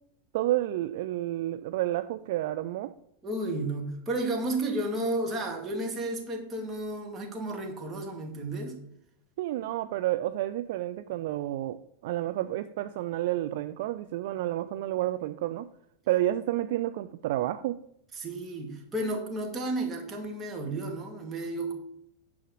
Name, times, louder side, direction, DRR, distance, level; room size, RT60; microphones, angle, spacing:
voice 1, 0.3-2.9 9.4-11.8 12.0-15.7 16.1-17.8, right 14 dB, 50° right, 11 dB, 0.4 m, -30 dB
voice 2, 3.2-8.8 18.1-21.7, right 1 dB, 20° right, 1 dB, 2.1 m, -32 dB
9.3 x 4.9 x 6.2 m, 0.72 s
figure-of-eight pair, 90°, 0 cm